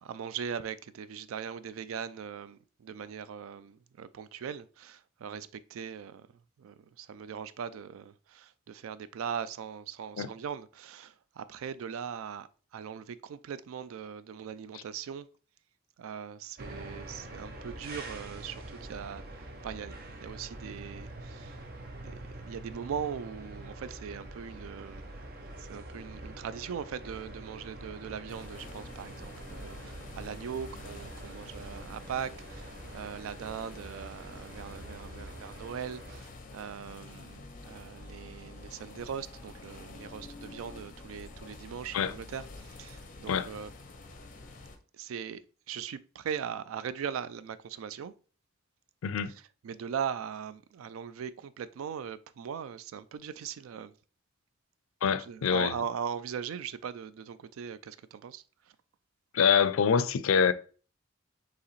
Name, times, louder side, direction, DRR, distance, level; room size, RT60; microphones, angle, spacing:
voice 1, 0.0-6.3 6.6-15.3 16.0-21.6 21.9-25.2 25.6-43.7 44.9-45.4 45.7-48.1 49.6-53.9 55.2-58.8, right 7 dB, 85° right, 0.3 m, -40 dB
sound 1, 16.6-36.2, right 1 dB, 45° right, 0.6 m, -45 dB
sound 2, 28.3-44.8, left 2 dB, 40° left, 0.6 m, -48 dB
voice 2, 55.0-55.7 59.3-60.5, left 7 dB, 85° left, 0.4 m, -25 dB
4.8 x 3.0 x 3.1 m
head